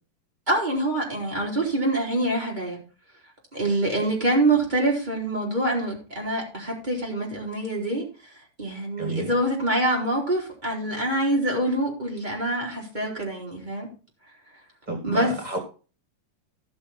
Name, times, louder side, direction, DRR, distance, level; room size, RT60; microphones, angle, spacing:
voice 1, 0.5-2.8 3.5-8.1 8.6-13.9 15.0-15.4, right 1 dB, 10° right, -2 dB, 2.9 m, -25 dB
voice 2, 9.0-9.3 14.9-15.6, right 2 dB, 50° right, 3 dB, 0.5 m, -30 dB
14.5 x 6.3 x 4.2 m, 0.35 s
omnidirectional pair, 4.5 m